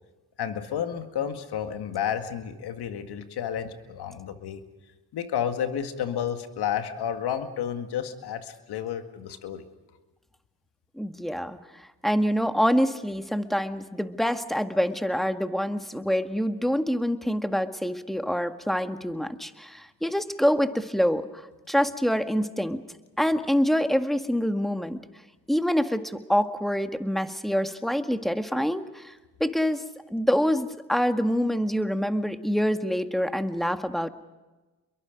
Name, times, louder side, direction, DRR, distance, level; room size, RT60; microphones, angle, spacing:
voice 1, 0.4-4.6 5.1-9.6, left 9 dB, 80° left, 8 dB, 2.0 m, -31 dB
voice 2, 11.0-21.4 21.7-22.8 23.2-25.0 25.5-29.1 29.4-29.8 30.1-34.1, equal, ahead, 8 dB, 1.8 m, -26 dB
29.5 x 22.5 x 5.3 m, 1.2 s
supercardioid pair, 50°, 39 cm